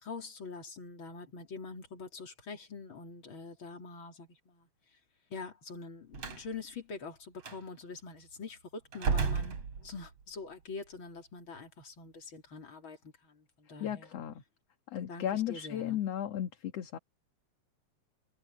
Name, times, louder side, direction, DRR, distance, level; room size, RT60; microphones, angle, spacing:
voice 1, 0.0-4.7 5.3-14.1 15.1-16.0, left 4 dB, 40° left, 3.8 m, -45 dB
Slam, 6.1-6.5 7.4-7.6 8.9-10.2, right 5 dB, 50° right, 3.8 m, -32 dB
voice 2, 13.8-14.4 14.9-17.0, left 11 dB, 60° left, 2.4 m, -35 dB
omnidirectional pair, 3.7 m